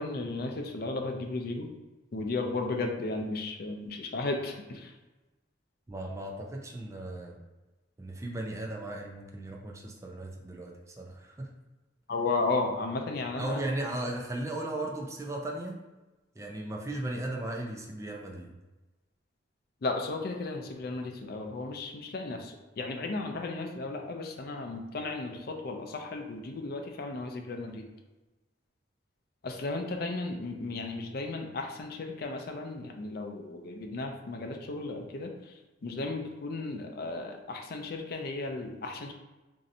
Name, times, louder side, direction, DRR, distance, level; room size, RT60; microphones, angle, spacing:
voice 1, 0.0-1.7 2.1-4.9 12.1-13.6 19.8-27.9 29.4-35.5 35.8-39.1, left 3 dB, 55° left, 3 dB, 0.4 m, -34 dB
voice 2, 5.9-7.4 8.0-11.5 13.4-15.8 16.4-18.5, right 1 dB, 15° right, 0 dB, 0.4 m, -36 dB
3.1 x 2.6 x 2.6 m, 1.1 s
head